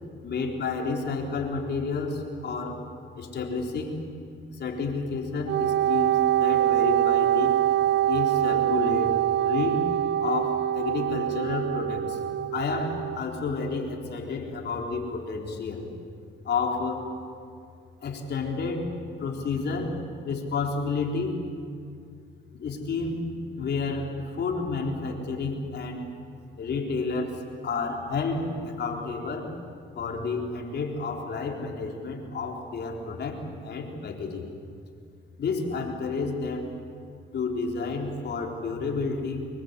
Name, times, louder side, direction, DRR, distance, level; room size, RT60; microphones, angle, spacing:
voice 1, 0.2-2.9 3.2-4.1 4.5-7.6 8.1-9.8 10.2-12.2 12.5-15.9 16.4-17.0 18.0-18.9 19.2-20.0 20.2-21.5 22.6-23.2 23.6-26.1 26.6-29.5 29.9-34.5 35.4-36.7 37.3-39.5, left 4 dB, 60° left, 1 dB, 4.2 m, -30 dB
Wind instrument woodwind instrument, 5.5-13.2, right 12 dB, 60° right, 0.9 m, -24 dB
25.0 x 22.0 x 8.3 m, 2.3 s
cardioid pair, 90°, 20 cm